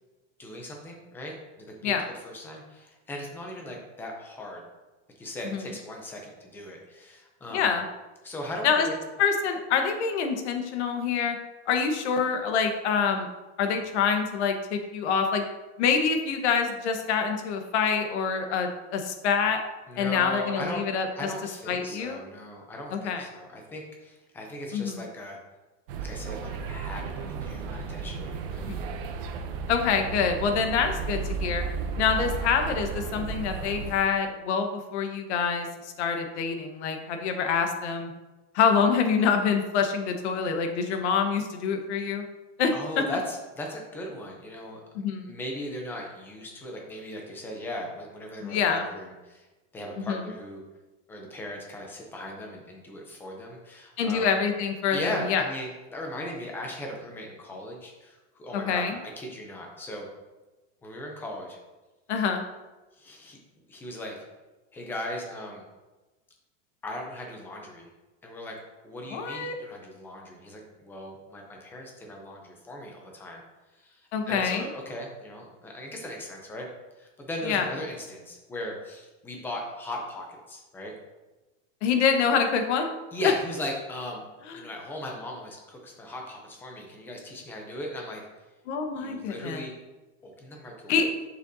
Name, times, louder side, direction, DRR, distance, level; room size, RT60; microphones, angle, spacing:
voice 1, 0.4-4.6 5.2-7.7 8.2-8.9 19.9-20.8 21.2-25.4 26.0-28.7 42.7-44.8 45.2-49.5 49.7-50.6 51.1-54.3 54.9-60.1 60.8-61.6 63.0-63.4 63.7-64.2 64.7-65.6 66.8-67.9 68.2-68.6 68.8-73.4 73.8-76.7 77.0-80.9 83.1-84.2 84.5-88.2 89.0-89.7 90.2-90.9, left 1 dB, 5° left, 1 dB, 0.5 m, -38 dB
voice 2, 7.5-7.8 8.6-8.9 9.2-11.4 11.7-13.3 13.6-15.5 15.8-19.6 20.0-21.1 21.7-22.2 22.9-23.2 24.7-25.0 28.7-28.8 29.7-31.6 32.0-38.1 38.5-42.2 42.6-43.0 44.9-45.3 48.4-48.8 50.0-50.2 54.0-55.4 58.5-58.9 62.1-62.4 69.1-69.5 74.1-74.7 77.4-77.7 81.8-82.9 83.2-83.3 88.7-89.7 90.9-91.1, left 6 dB, 65° left, 5 dB, 1.2 m, -26 dB
sound 1, 25.9-33.9, right 5 dB, 50° right, 0.7 m, -34 dB
7.6 x 6.7 x 2.7 m, 1.1 s
supercardioid pair, 180°, 36 cm